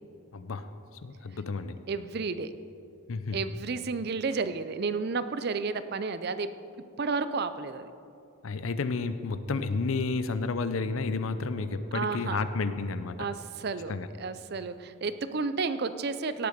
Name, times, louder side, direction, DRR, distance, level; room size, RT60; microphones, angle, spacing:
voice 1, 0.3-0.7 1.0-1.8 3.1-3.4 8.4-13.3 13.9-14.1, left 4 dB, 75° left, 11 dB, 0.6 m, -31 dB
voice 2, 1.9-2.5 3.3-6.5 7.0-7.9 11.9-12.4 13.2-16.5, right 4 dB, 50° right, 12 dB, 0.5 m, -32 dB
17.5 x 6.8 x 5.1 m, 2.6 s
head